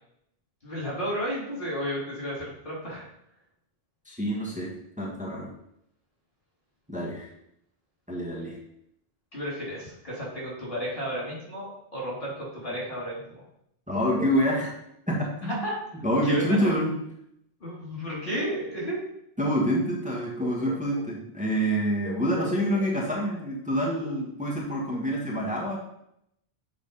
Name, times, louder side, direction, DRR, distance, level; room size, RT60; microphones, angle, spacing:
voice 1, 0.6-3.1 9.3-13.4 15.4-15.8 16.2-16.7 17.6-19.0, equal, 55° left, -5 dB, 3.6 m, -32 dB
voice 2, 4.0-5.5 6.9-7.3 8.1-8.6 13.9-14.7 15.1-15.6 16.0-16.9 19.4-25.8, equal, 5° right, -3 dB, 1.4 m, -27 dB
7.1 x 4.1 x 5.5 m, 0.76 s
omnidirectional pair, 1.0 m